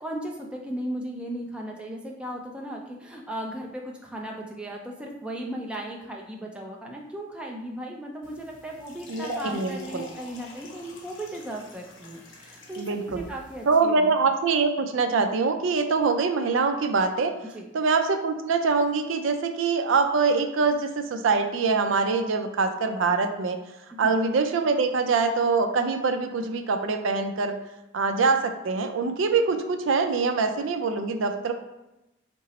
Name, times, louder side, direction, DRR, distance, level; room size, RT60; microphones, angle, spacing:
voice 1, 0.0-14.1 17.5-17.6 23.9-24.1, right 1 dB, 5° right, 0 dB, 0.4 m, -36 dB
sound 1, 8.2-13.8, left 3 dB, 75° left, 0.8 m, -44 dB
voice 2, 9.1-10.0 12.8-13.2 13.7-17.3 17.7-23.6 24.0-27.6 27.9-31.5, right 4 dB, 75° right, 6 dB, 0.4 m, -24 dB
5.2 x 2.0 x 4.1 m, 0.95 s
head